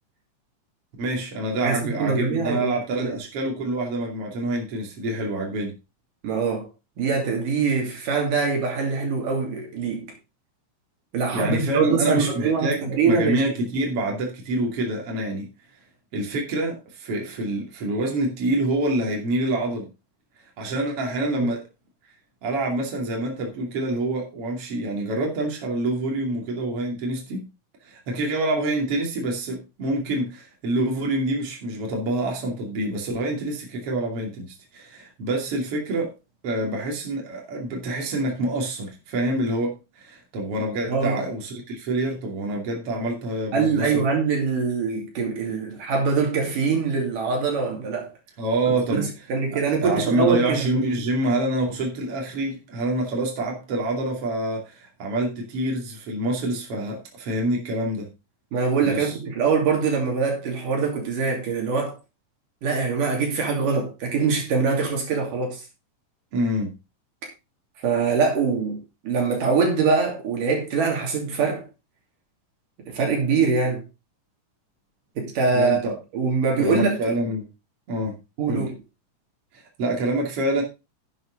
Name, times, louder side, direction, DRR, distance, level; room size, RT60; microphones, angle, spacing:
voice 1, 1.0-5.7 11.3-15.5 16.1-19.9 20.6-21.6 22.4-27.4 27.8-36.1 36.4-44.0 48.4-49.1 49.5-58.1 58.8-59.1 66.3-66.7 75.5-76.0 76.6-77.5 77.9-78.2 78.5-78.7 79.8-80.6, right 1 dB, 45° right, 3.4 m, -26 dB
voice 2, 1.6-3.1 6.2-6.7 7.0-10.1 11.1-13.5 40.9-41.2 43.5-48.1 48.7-50.8 58.5-62.0 62.6-65.6 67.8-71.7 72.9-73.8 75.2-75.8 76.1-77.0 78.4-78.7, right 5 dB, 80° right, 4.4 m, -23 dB
11.0 x 7.9 x 3.9 m
omnidirectional pair, 3.7 m